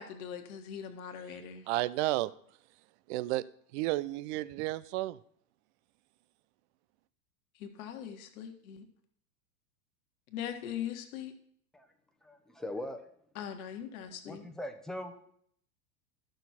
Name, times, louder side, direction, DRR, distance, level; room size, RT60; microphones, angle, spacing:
voice 1, 0.0-1.7 7.6-8.9 10.3-11.3 13.3-14.5, left 9 dB, 65° left, 5 dB, 1.6 m, -41 dB
voice 2, 1.7-2.3 3.1-3.4 3.7-5.2, right 17 dB, 50° right, 18 dB, 0.5 m, -32 dB
voice 3, 12.2-13.0 14.2-15.1, left 1 dB, ahead, 5 dB, 0.9 m, -40 dB
12.0 x 6.4 x 4.3 m, 0.63 s
hypercardioid pair, 105°, 47 cm